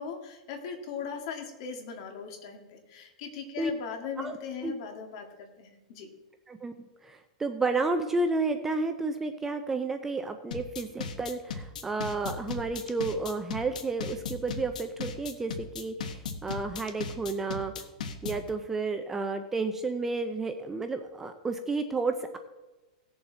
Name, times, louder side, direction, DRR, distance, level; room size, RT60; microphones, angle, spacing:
voice 1, 0.0-5.3 5.6-6.1, left 6 dB, 45° left, 4 dB, 1.9 m, -39 dB
voice 2, 7.0-17.7 18.2-22.4, right 3 dB, 10° right, 7 dB, 0.4 m, -31 dB
sound 1, 10.5-18.5, left 5 dB, 85° left, 1.3 m, -37 dB
17.5 x 7.1 x 4.0 m, 1.1 s
supercardioid pair, 170°, 4 cm